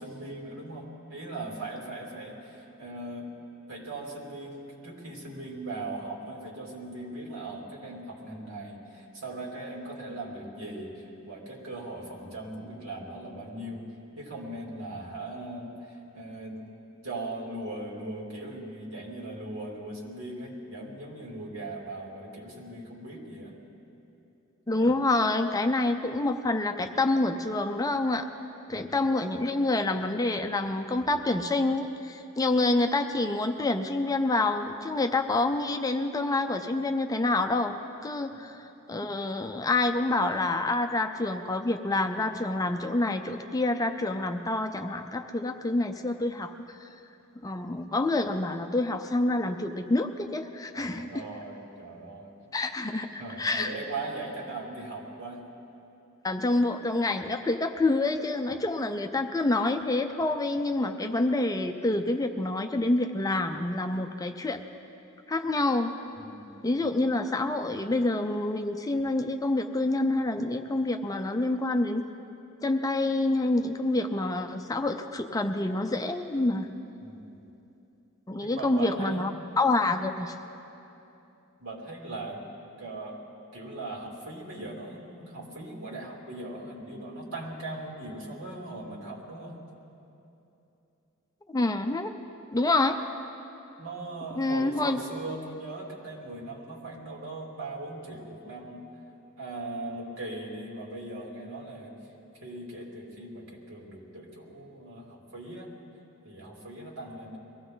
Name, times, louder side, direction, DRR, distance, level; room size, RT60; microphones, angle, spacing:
voice 1, 0.0-3.3 3.7-13.8 14.2-16.6 17.0-23.6 28.7-29.0 38.3-38.4 50.7-52.3 53.2-55.4 66.1-67.1 77.0-77.4 78.4-79.3 81.6-82.4 82.8-83.2 83.5-89.6 93.8-98.9 99.4-101.9 102.4-105.7 106.2-107.4, right 2 dB, 70° right, -3 dB, 3.0 m, -39 dB
voice 2, 24.7-28.3 28.7-46.9 47.4-51.2 52.5-53.7 56.2-64.6 65.3-65.9 66.6-72.0 72.6-76.7 78.3-79.3 79.6-80.3 91.5-92.1 92.5-93.0 94.4-95.0, left 2 dB, 15° left, 6 dB, 0.5 m, -27 dB
23.0 x 16.0 x 3.9 m, 2.9 s
head